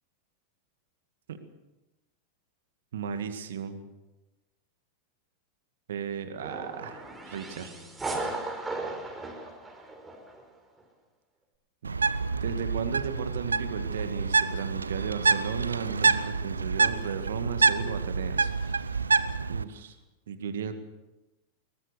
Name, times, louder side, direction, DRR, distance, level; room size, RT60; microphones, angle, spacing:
voice 1, 2.9-3.8 5.9-7.8 11.8-11.9 12.4-19.0 19.5-20.0 20.3-20.7, right 7 dB, 60° right, 9 dB, 2.0 m, -35 dB
sound 1, 6.4-10.4, right 2 dB, 10° right, 4.5 m, -36 dB
Bird, 11.8-19.6, right 4 dB, 75° right, 0.7 m, -27 dB
22.0 x 19.5 x 6.8 m, 1.0 s
figure-of-eight pair, 90°, 0 cm